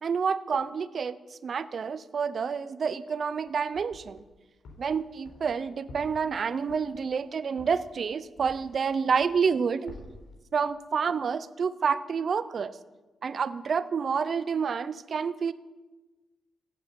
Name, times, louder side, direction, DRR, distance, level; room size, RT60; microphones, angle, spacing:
voice 1, 0.0-4.2 4.8-10.0 10.5-12.8 13.2-15.5, right 6 dB, 45° right, 15 dB, 0.6 m, -29 dB
sound 1, 3.2-4.2 4.6-8.8 9.1-9.6 9.9-10.4, left 2 dB, 80° left, 3.7 m, -50 dB
15.0 x 8.3 x 9.6 m, 1.2 s
wide cardioid pair, 140°, 0 cm